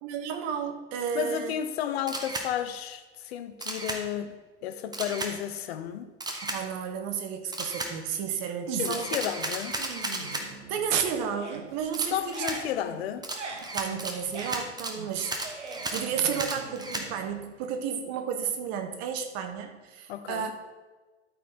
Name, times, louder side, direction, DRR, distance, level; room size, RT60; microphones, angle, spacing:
voice 1, 0.0-1.5 6.4-9.2 10.7-12.4 13.7-15.5 15.9-20.5, right 7 dB, 45° right, 6 dB, 1.3 m, -32 dB
voice 2, 1.1-6.1 8.8-9.8 12.1-13.3 20.1-20.5, left 10 dB, 60° left, 9 dB, 0.9 m, -32 dB
Camera, 2.1-2.5 3.6-4.0 4.9-5.3 6.2-6.6 7.5-7.9 8.8-10.4 11.9-12.6 13.2-17.1, right 2 dB, 10° right, 1.1 m, -34 dB
sound 1, 8.7-9.2 9.6-11.0 11.2-17.8, right 4 dB, 80° right, 1.0 m, -42 dB
12.5 x 4.3 x 4.2 m, 1.2 s
figure-of-eight pair, 80°, 35 cm